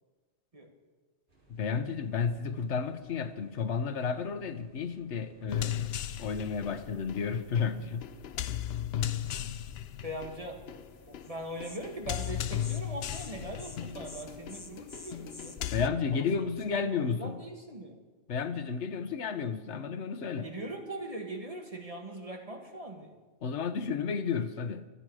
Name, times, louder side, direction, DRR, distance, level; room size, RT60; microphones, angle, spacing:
sound 1, 1.3-16.8, equal, 65° right, 4.3 m, -61 dB
voice 1, 1.5-5.9 6.2-8.1 15.7-17.4 18.3-20.5 23.4-24.9, left 6 dB, 90° left, 12 dB, 1.2 m, -32 dB
sound 2, 5.5-15.9, left 10 dB, 70° left, 0.9 m, -36 dB
voice 2, 10.0-10.7 11.1-15.6 16.6-18.0 20.4-23.1, right 1 dB, 30° right, 3 dB, 1.9 m, -41 dB
Insect, 11.2-11.4 11.6-11.8 12.1-12.3 12.6-12.8 13.1-13.3 13.6-13.8 14.0-15.6, left 2 dB, 20° left, 1.0 m, -47 dB
26.0 x 9.1 x 4.9 m, 1.3 s
omnidirectional pair, 1.1 m